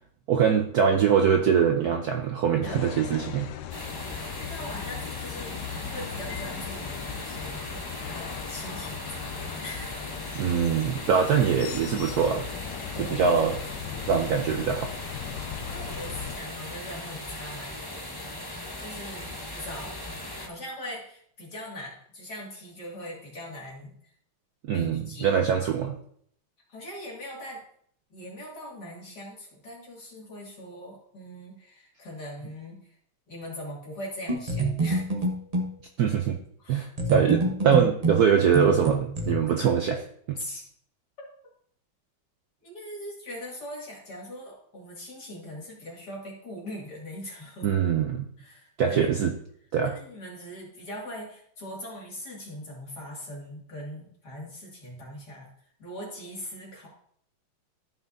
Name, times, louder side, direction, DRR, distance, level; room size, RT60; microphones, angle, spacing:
voice 1, 0.3-3.5 10.3-12.4 13.1-13.6 14.1-14.9 24.7-26.0 36.0-36.4 36.7-40.4 47.6-48.3 48.8-49.3 49.7-50.0, right 7 dB, 65° right, 3 dB, 1.0 m, -23 dB
sound 1, 2.6-16.4, left 9 dB, 75° left, 1.0 m, -38 dB
sound 2, 3.7-20.5, left 1 dB, 25° left, 0.4 m, -38 dB
voice 2, 4.5-10.1 12.9-13.4 15.7-24.0 24.7-25.3 26.7-27.6 28.1-32.9 33.3-35.1 36.6-37.3 40.4-40.6 41.2-41.3 42.6-47.7 48.4-49.3 49.8-55.5 55.8-56.9, left 1 dB, 50° left, -3 dB, 3.0 m, -41 dB
sound 3, 34.3-35.8 37.0-39.3, right 2 dB, 30° right, 0.8 m, -27 dB
14.0 x 5.8 x 2.7 m, 0.64 s
omnidirectional pair, 2.3 m